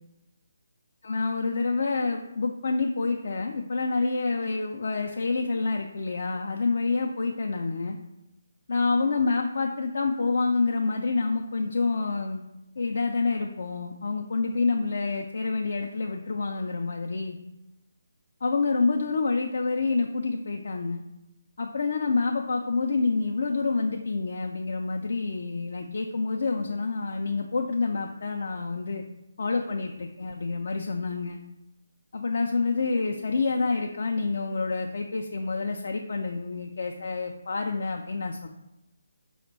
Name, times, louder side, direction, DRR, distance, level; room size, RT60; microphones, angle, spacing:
voice 1, 1.0-8.0 8.7-12.4 12.8-17.4 18.4-21.0 21.6-29.0 29.4-31.4 32.1-38.5, left 4 dB, 60° left, 2 dB, 0.3 m, -27 dB
5.0 x 2.1 x 4.5 m, 0.94 s
figure-of-eight pair, 150°, 0 cm